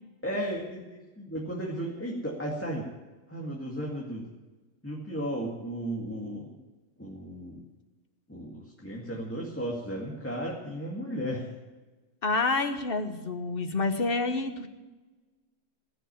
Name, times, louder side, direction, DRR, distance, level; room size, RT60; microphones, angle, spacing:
voice 1, 0.2-2.9 3.3-4.3 4.8-6.6 7.0-7.6 8.3-11.5, equal, 10° left, -2 dB, 2.2 m, -34 dB
voice 2, 12.2-14.7, left 3 dB, 45° left, 8 dB, 1.3 m, -28 dB
20.0 x 6.7 x 9.0 m, 1.2 s
omnidirectional pair, 1.4 m